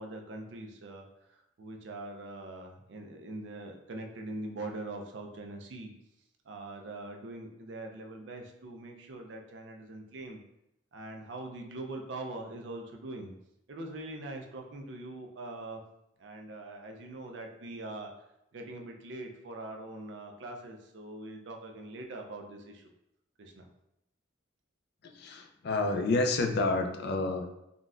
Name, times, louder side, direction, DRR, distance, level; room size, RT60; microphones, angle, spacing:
voice 1, 0.0-5.9 6.5-10.4 10.9-13.3 13.7-15.8 16.2-18.1 18.5-22.9 23.4-23.7, right 2 dB, 60° right, 3 dB, 0.4 m, -42 dB
voice 2, 25.0-27.5, left 3 dB, 55° left, 5 dB, 0.3 m, -29 dB
3.8 x 2.1 x 2.4 m, 0.83 s
head